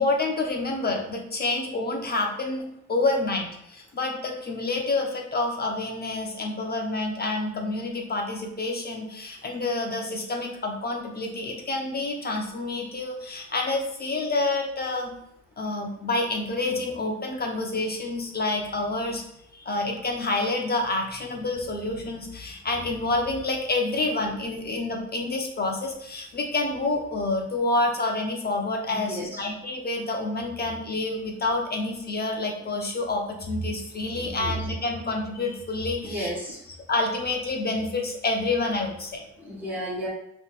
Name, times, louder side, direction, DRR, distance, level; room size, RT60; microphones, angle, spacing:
voice 1, 0.0-15.1 15.6-19.2 19.5-36.3 36.9-39.2, left 2 dB, 30° left, 2 dB, 0.7 m, -28 dB
voice 2, 28.9-29.4 34.2-34.6 36.0-36.6 39.4-40.1, equal, 5° right, -5 dB, 1.3 m, -33 dB
5.2 x 3.0 x 2.5 m, 0.77 s
cardioid pair, 90°, 30 cm